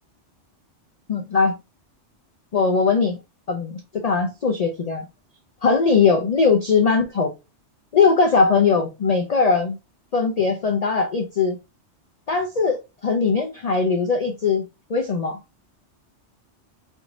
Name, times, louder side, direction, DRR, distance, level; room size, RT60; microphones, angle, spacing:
voice 1, 1.1-1.6 2.5-3.2 3.5-5.1 5.6-7.3 7.9-9.8 10.1-11.6 12.3-15.4, left 5 dB, 50° left, 0.4 m, -20 dB
3.2 x 3.1 x 2.5 m
omnidirectional pair, 1.2 m